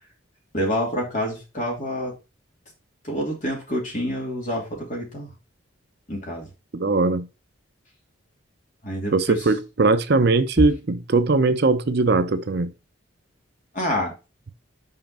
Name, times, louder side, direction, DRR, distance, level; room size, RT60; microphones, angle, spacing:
voice 1, 0.5-2.2 3.0-5.3 6.1-6.5 8.8-9.4 13.7-14.1, equal, 40° left, 2.9 m, -27 dB
voice 2, 6.7-7.3 9.1-12.7, right 3 dB, 55° right, 0.6 m, -20 dB
5.7 x 4.9 x 4.3 m
head